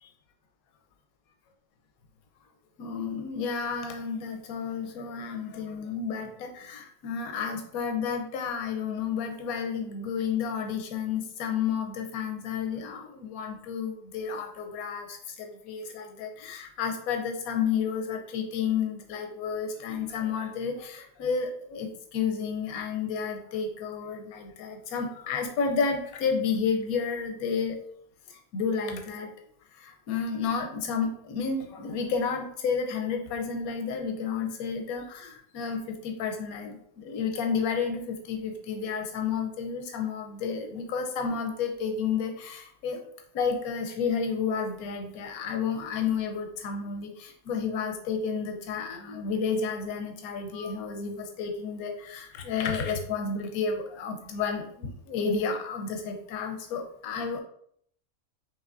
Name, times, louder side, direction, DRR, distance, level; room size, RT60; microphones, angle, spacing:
voice 1, 2.8-27.8 28.3-29.3 29.7-43.0 43.3-57.4, left 6 dB, 85° left, 3 dB, 1.1 m, -31 dB
5.5 x 3.0 x 2.5 m, 0.66 s
omnidirectional pair, 1.5 m